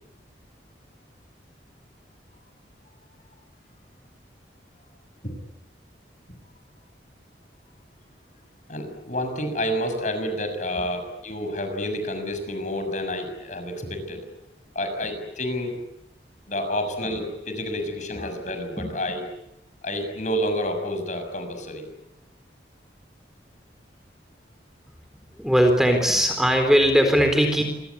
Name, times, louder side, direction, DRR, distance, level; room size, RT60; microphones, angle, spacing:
voice 1, 8.7-14.2 14.7-15.8 16.5-19.3 19.8-21.8, equal, 45° left, 7 dB, 6.4 m, -29 dB
voice 2, 25.4-27.6, equal, ahead, 5 dB, 4.0 m, -19 dB
28.0 x 24.5 x 8.4 m, 0.82 s
head